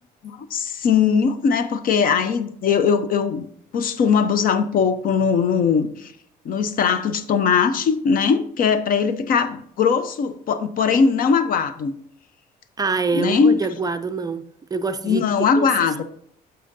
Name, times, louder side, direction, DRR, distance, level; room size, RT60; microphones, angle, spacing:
voice 1, 0.2-3.5 3.7-6.1 6.4-11.9 13.1-13.6 15.0-16.0, left 6 dB, 55° left, 0.7 m, -20 dB
voice 2, 12.8-14.4 14.7-15.7, right 4 dB, 20° right, 0.4 m, -25 dB
8.8 x 6.8 x 2.6 m
cardioid pair, 110°, 17 cm